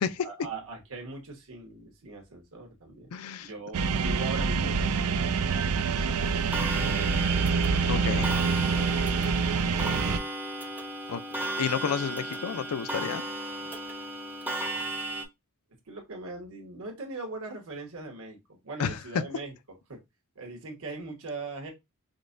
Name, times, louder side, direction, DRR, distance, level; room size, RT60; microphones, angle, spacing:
voice 1, 0.2-3.1 3.4-5.6 8.0-8.3 8.7-10.1 10.9-11.2 14.9-15.1 15.9-20.0 20.3-21.7, right 3 dB, 65° right, 1.2 m, -41 dB
voice 2, 3.1-3.5 7.9-8.3 11.1-11.2 11.6-13.2 18.8-19.2, left 7 dB, 70° left, 0.4 m, -30 dB
sound 1, 3.7-10.2, right 5 dB, 85° right, 0.4 m, -26 dB
Clock, 6.5-15.3, right 1 dB, 10° right, 0.5 m, -35 dB
5.0 x 2.2 x 2.5 m
head